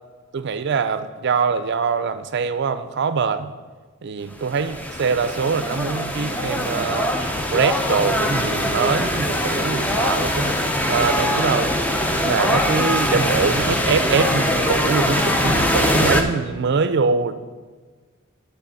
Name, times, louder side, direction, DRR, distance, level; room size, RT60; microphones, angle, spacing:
voice 1, 0.3-3.5 4.0-7.1 7.5-10.6 10.9-11.8 12.2-17.3, right 5 dB, 55° right, 11 dB, 0.4 m, -23 dB
sound 1, 4.3-16.2, left 1 dB, 5° left, 0.5 m, -22 dB
9.9 x 3.4 x 6.9 m, 1.4 s
head